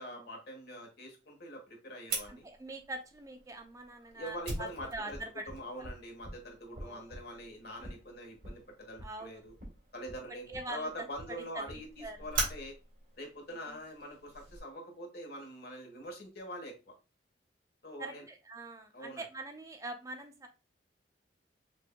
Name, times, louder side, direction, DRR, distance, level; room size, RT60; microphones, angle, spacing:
voice 1, 0.0-2.4 4.1-5.2 5.5-9.5 9.9-12.7 13.1-16.9 17.8-18.2 18.9-19.2, equal, 60° left, 2 dB, 1.3 m, -44 dB
Fire, 2.1-14.6, right 2 dB, 55° right, 2.0 m, -43 dB
voice 2, 2.3-5.5 5.8-5.9 6.7-7.1 9.0-9.4 10.5-10.9 11.5-11.6 12.0-12.2 13.7-13.8 18.0-20.5, right 2 dB, 20° right, 5 dB, 0.4 m, -43 dB
6.2 x 2.6 x 2.2 m, 0.30 s
head